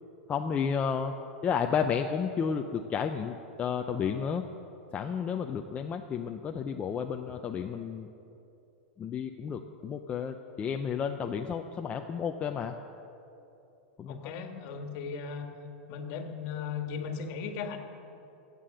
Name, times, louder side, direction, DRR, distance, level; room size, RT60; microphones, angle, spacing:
voice 1, 0.3-1.1 1.4-4.5 4.9-8.1 9.0-12.8 14.0-14.3, left 7 dB, 20° left, 4 dB, 0.5 m, -32 dB
voice 2, 14.0-15.5 15.9-17.8, left 6 dB, 50° left, 5 dB, 1.7 m, -37 dB
15.5 x 8.4 x 7.7 m, 2.9 s
supercardioid pair, 135°, 6 cm